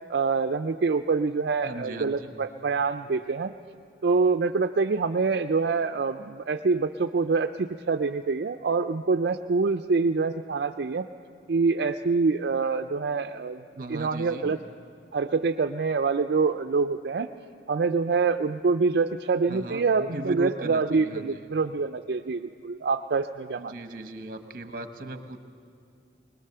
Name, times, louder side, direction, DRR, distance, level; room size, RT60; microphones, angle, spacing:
voice 1, 0.1-3.5 4.0-11.1 11.5-13.6 13.9-14.6 15.1-17.3 17.7-23.7, right 4 dB, 70° right, 7 dB, 0.4 m, -25 dB
voice 2, 1.6-2.3 13.7-14.5 19.5-21.5 23.6-25.4, right 1 dB, 50° right, 8 dB, 1.1 m, -38 dB
21.0 x 21.0 x 6.7 m, 2.3 s
head